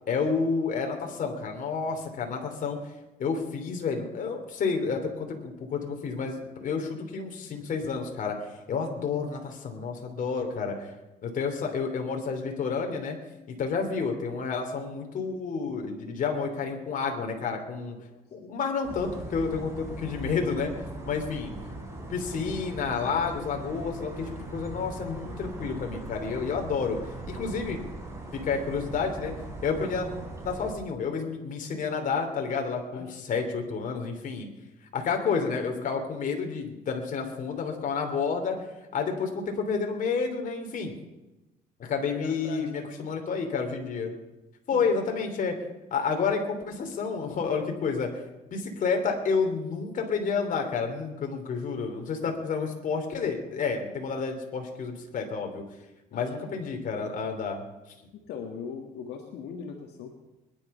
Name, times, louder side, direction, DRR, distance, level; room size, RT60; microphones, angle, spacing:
voice 1, 0.1-2.8 3.2-10.9 11.2-13.2 13.5-18.0 18.3-20.7 21.0-21.5 22.1-27.0 27.2-27.8 28.3-29.3 29.6-30.1 30.4-34.5 34.9-38.6 38.9-41.0 41.8-44.1 44.7-45.6 45.9-48.1 48.5-55.6 56.1-57.6, left 5 dB, 50° left, 4 dB, 3.1 m, -30 dB
sound 1, 18.8-30.7, right 2 dB, 15° right, 4.4 m, -40 dB
voice 2, 42.1-42.9 44.7-45.1 56.1-56.3 58.1-60.1, left 6 dB, 75° left, 2 dB, 1.8 m, -40 dB
21.5 x 11.0 x 5.6 m, 1.0 s
cardioid pair, 110°, 17 cm